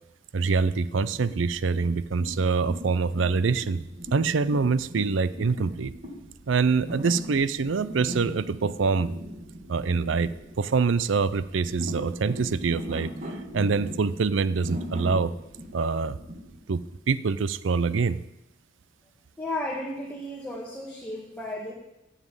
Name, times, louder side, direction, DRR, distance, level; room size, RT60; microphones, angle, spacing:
voice 1, 0.3-3.8 4.1-5.9 6.5-9.1 9.7-13.1 13.5-15.3 15.7-16.2 16.7-18.2, right 4 dB, 75° right, 16 dB, 0.5 m, -25 dB
sound 1, 1.1-16.6, equal, 40° right, 1.8 m, -39 dB
voice 2, 19.4-21.7, left 1 dB, 5° left, -3 dB, 1.6 m, -34 dB
9.8 x 7.4 x 8.9 m, 0.93 s
head